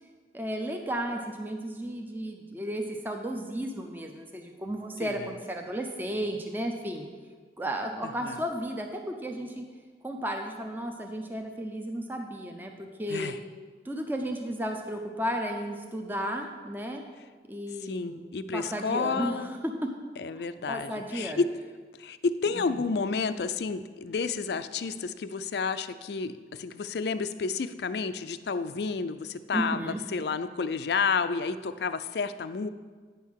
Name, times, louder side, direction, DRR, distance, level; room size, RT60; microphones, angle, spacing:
voice 1, 0.3-7.1 7.6-9.6 10.0-13.3 13.8-17.0 17.5-19.9 20.4-21.4 22.5-22.6 29.5-30.0, equal, 10° right, 3 dB, 0.6 m, -34 dB
voice 2, 5.0-5.3 8.2-8.4 13.1-13.4 17.8-19.5 20.2-21.4 22.0-32.7, left 5 dB, 65° left, 12 dB, 0.4 m, -31 dB
9.3 x 5.6 x 6.3 m, 1.5 s
head